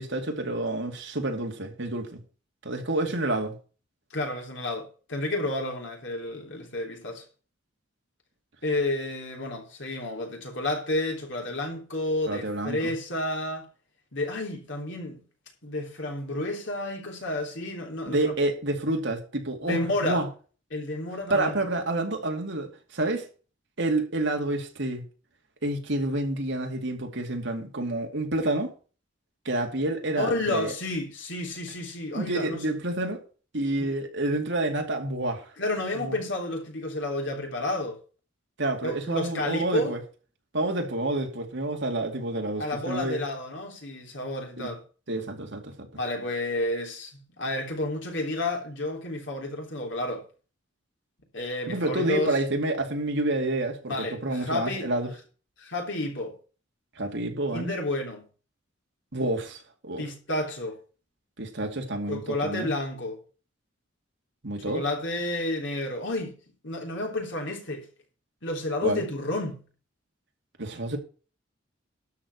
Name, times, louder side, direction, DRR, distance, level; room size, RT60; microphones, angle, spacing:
voice 1, 0.0-2.2 2.6-3.5 12.3-12.9 18.1-20.3 21.3-23.3 23.8-25.0 25.6-28.7 29.4-30.7 32.1-33.2 33.5-35.5 35.9-36.1 38.6-40.0 40.5-43.2 44.6-44.7 45.1-45.7 51.7-53.9 54.2-55.1 57.0-57.7 59.1-60.0 61.4-62.7 64.4-64.8 68.8-69.0 70.6-71.0, right 2 dB, 65° right, 2.5 m, -28 dB
voice 2, 4.1-7.2 8.6-13.7 14.1-15.2 15.6-18.3 19.7-20.2 20.7-21.6 30.2-32.6 33.8-33.9 35.6-38.0 38.8-39.9 42.6-44.8 46.0-50.2 51.3-52.4 53.9-54.9 55.6-56.3 57.5-58.3 60.0-60.8 62.1-63.2 64.6-66.4 66.6-67.9 68.4-69.6, left 2 dB, 65° left, 3.3 m, -31 dB
12.5 x 4.7 x 8.2 m
head